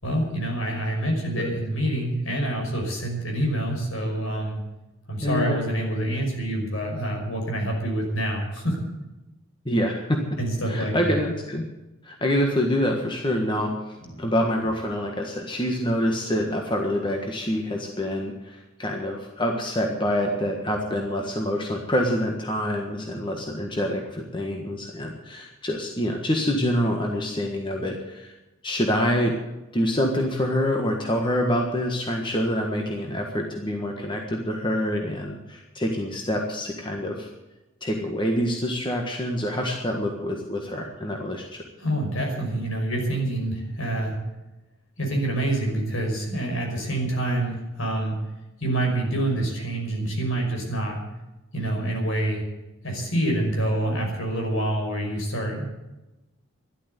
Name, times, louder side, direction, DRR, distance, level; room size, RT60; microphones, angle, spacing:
voice 1, 0.0-4.6 5.1-8.8 10.4-11.2 14.0-14.3 41.8-44.2 45.0-48.2 48.6-51.0 51.5-52.4 52.8-55.6, right 1 dB, 65° left, 1 dB, 5.7 m, -26 dB
voice 2, 5.2-5.6 9.6-10.2 10.7-11.6 12.0-28.3 28.6-29.3 29.7-37.3 37.8-41.6, equal, 20° left, 2 dB, 1.5 m, -26 dB
13.0 x 11.5 x 8.2 m, 1.0 s
head